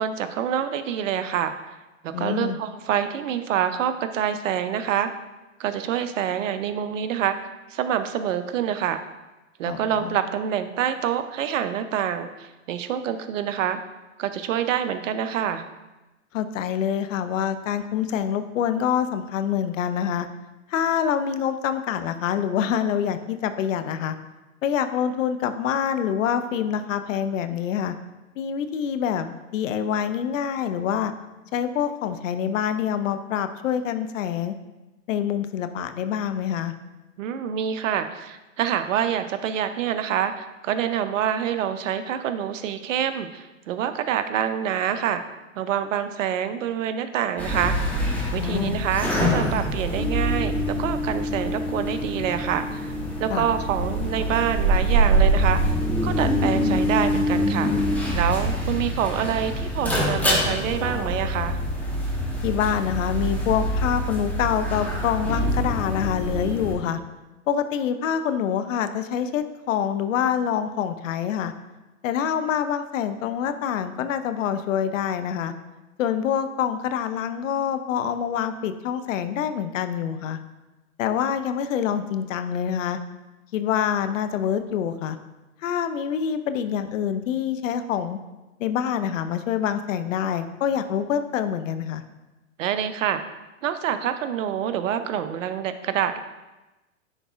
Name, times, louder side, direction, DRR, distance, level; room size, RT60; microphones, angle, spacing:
voice 1, 0.0-1.5 2.0-5.1 5.6-9.0 9.6-13.8 14.2-15.6 37.2-45.2 45.6-47.8 48.3-52.9 53.2-55.6 56.0-57.7 58.1-61.6 92.6-93.2 93.6-96.2, right 9 dB, 65° right, 10 dB, 0.6 m, -26 dB
voice 2, 2.1-2.6 9.6-10.2 16.3-20.3 20.7-24.1 24.6-27.9 28.4-31.1 31.5-34.5 35.1-36.7 48.4-48.8 53.3-53.5 62.4-67.0 67.5-71.5 72.0-75.5 76.0-80.4 81.0-83.0 83.5-85.2 85.6-88.2 88.6-92.0, left 8 dB, 70° left, 10 dB, 0.6 m, -26 dB
sound 1, 47.4-66.7, equal, 5° left, 1.1 m, -25 dB
9.9 x 4.0 x 2.4 m, 1.1 s
hypercardioid pair, 110°, 40 cm